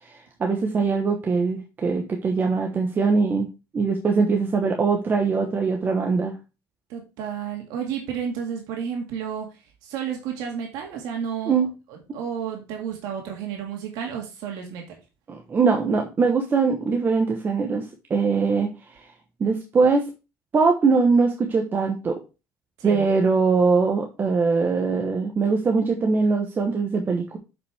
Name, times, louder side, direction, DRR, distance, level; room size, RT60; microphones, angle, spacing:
voice 1, 0.0-3.5 3.7-6.3 11.5-11.7 15.3-17.8 18.1-19.1 19.4-20.1 20.5-22.2 22.8-27.4, right 4 dB, 30° right, 3 dB, 1.1 m, -22 dB
voice 2, 6.9-15.0 22.8-23.0, right 7 dB, 85° right, 2 dB, 2.0 m, -32 dB
7.7 x 5.4 x 3.4 m, 0.29 s
cardioid pair, 125°, 6 cm